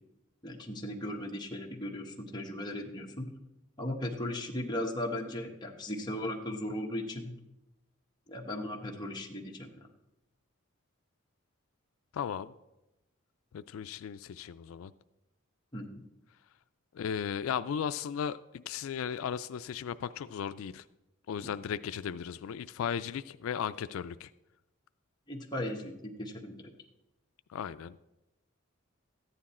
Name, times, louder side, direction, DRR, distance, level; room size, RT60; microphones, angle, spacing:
voice 1, 0.4-3.3 3.8-7.3 8.3-9.7 15.7-16.0 25.3-26.6, left 1 dB, 20° left, 0 dB, 1.2 m, -37 dB
voice 2, 12.1-12.5 13.5-14.9 16.9-20.8 21.3-24.3 27.5-28.0, left 8 dB, 80° left, 13 dB, 0.3 m, -36 dB
14.0 x 9.8 x 4.3 m, 0.95 s
head